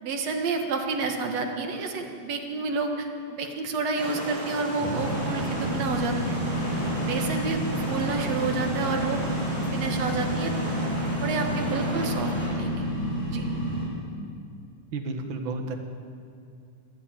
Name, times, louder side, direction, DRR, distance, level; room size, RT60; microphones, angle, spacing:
voice 1, 0.0-6.4 7.0-9.2 9.6-10.8 11.2-12.9 13.3-13.5, right 4 dB, 55° right, 3 dB, 2.0 m, -30 dB
sound 1, 4.0-12.5, equal, 15° right, 7.9 m, -35 dB
sound 2, 4.8-13.9, equal, 50° left, 6.6 m, -29 dB
voice 2, 14.9-15.7, right 3 dB, 85° right, 4 dB, 1.1 m, -31 dB
25.0 x 12.0 x 9.1 m, 2.4 s
omnidirectional pair, 4.8 m